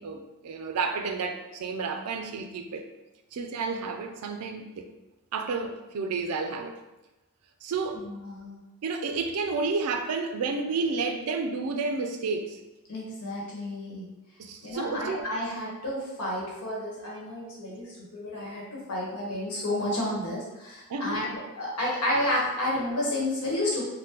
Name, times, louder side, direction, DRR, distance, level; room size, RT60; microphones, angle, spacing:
voice 1, 0.0-2.8 3.3-4.9 5.3-6.7 7.6-8.0 8.8-12.6 14.4-15.3 20.9-21.3, right 4 dB, 80° right, 5 dB, 0.4 m, -31 dB
voice 2, 7.9-8.6 12.9-14.0 14.6-17.9 18.1-21.3 21.6-23.9, left 1 dB, 85° left, -4 dB, 1.0 m, -31 dB
3.5 x 2.1 x 2.8 m, 1.0 s
head